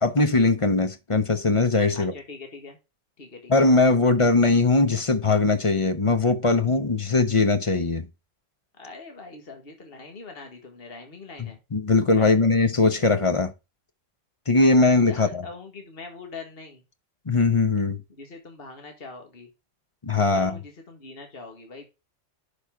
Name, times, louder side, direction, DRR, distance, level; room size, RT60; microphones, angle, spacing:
voice 1, 0.0-2.1 3.5-8.1 11.7-13.5 14.5-15.4 17.3-18.0 20.0-20.6, left 3 dB, 30° left, 0.8 m, -20 dB
voice 2, 1.9-2.8 3.2-3.7 8.7-11.6 12.1-12.4 14.8-16.8 18.1-19.5 20.2-21.9, left 3 dB, 50° left, 1.9 m, -42 dB
11.0 x 5.1 x 3.6 m
omnidirectional pair, 1.3 m